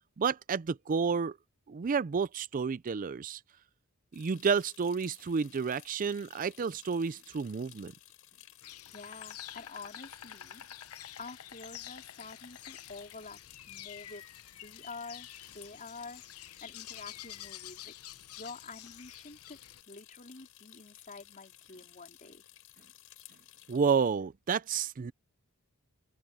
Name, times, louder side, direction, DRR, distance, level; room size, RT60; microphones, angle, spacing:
voice 1, 0.2-1.4 1.7-3.4 4.1-7.9 23.7-25.1, right 5 dB, 40° right, 0.4 m, -30 dB
sound 1, 4.1-23.8, left 13 dB, 70° left, 6.3 m, -57 dB
Insect, 8.6-19.8, left 11 dB, 85° left, 0.9 m, -48 dB
voice 2, 8.8-10.6 11.2-13.4 13.7-14.3 14.6-15.3 15.5-16.2 16.6-17.9 18.4-19.6 19.9-22.4, left 3 dB, 35° left, 3.6 m, -47 dB
open air
head